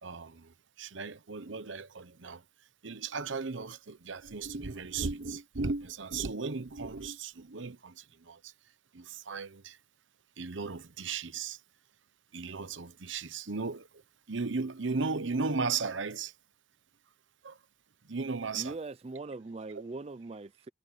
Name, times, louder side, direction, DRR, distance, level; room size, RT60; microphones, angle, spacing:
voice 1, 0.0-2.4 2.8-8.4 8.9-9.8 10.4-11.6 12.3-13.9 14.3-16.3 17.4-17.6 18.1-18.7, right 4 dB, 75° right, 1.0 m, -36 dB
voice 2, 18.5-20.7, right 3 dB, 30° right, 0.4 m, -41 dB
head